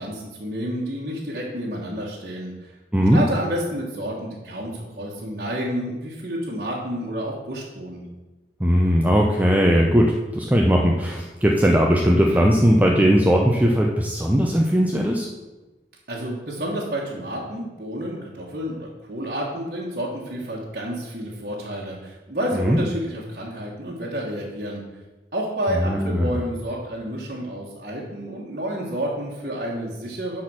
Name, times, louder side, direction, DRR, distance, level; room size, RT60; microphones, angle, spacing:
voice 1, 0.0-2.8 3.1-8.1 16.1-24.8 25.3-30.4, equal, 50° right, -6 dB, 1.4 m, -30 dB
voice 2, 2.9-3.2 8.6-15.3 22.5-22.8 25.7-26.3, equal, 10° right, -1 dB, 0.6 m, -19 dB
10.5 x 4.3 x 6.3 m, 1.1 s
head